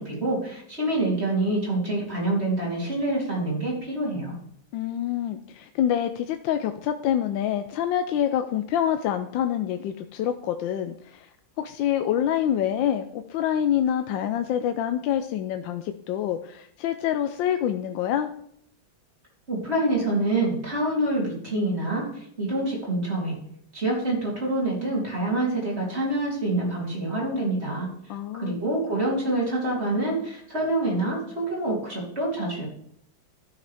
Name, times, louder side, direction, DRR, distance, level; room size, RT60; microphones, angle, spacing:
voice 1, 0.0-4.3 19.5-23.3 23.7-27.9 28.4-32.7, right 2 dB, 30° right, -4 dB, 3.5 m, -26 dB
voice 2, 4.7-11.3 11.6-18.3 28.1-28.6, left 10 dB, 80° left, 8 dB, 1.3 m, -26 dB
14.0 x 6.5 x 3.4 m, 0.66 s
omnidirectional pair, 2.1 m